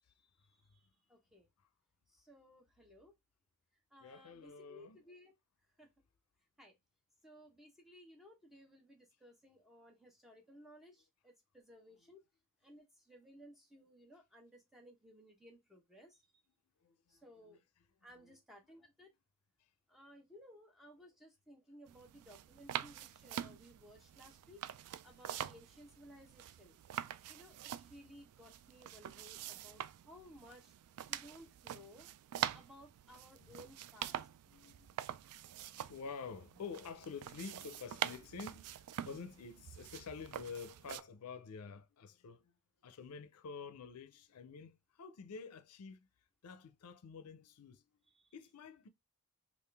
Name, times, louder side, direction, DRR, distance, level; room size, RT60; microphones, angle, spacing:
voice 1, 0.1-1.5 2.1-3.1 3.9-5.3 5.8-5.9 6.6-6.8 7.2-12.2 12.6-16.2 17.1-17.6 18.0-19.1 19.9-24.6 25.0-26.8 27.3-30.7 31.1-32.1 32.5-34.2 48.1-48.3, equal, ahead, 0.9 m, -59 dB
voice 2, 4.0-5.0 16.8-17.6 18.1-18.4 19.6-19.7 29.1-29.2 33.4-33.6 34.1-35.0 35.7-42.6 42.8-46.1 46.4-48.0 48.3-48.9, left 5 dB, 80° left, 0.5 m, -49 dB
sound 1, 21.9-41.0, right 10 dB, 85° right, 0.3 m, -45 dB
3.7 x 2.4 x 3.3 m
head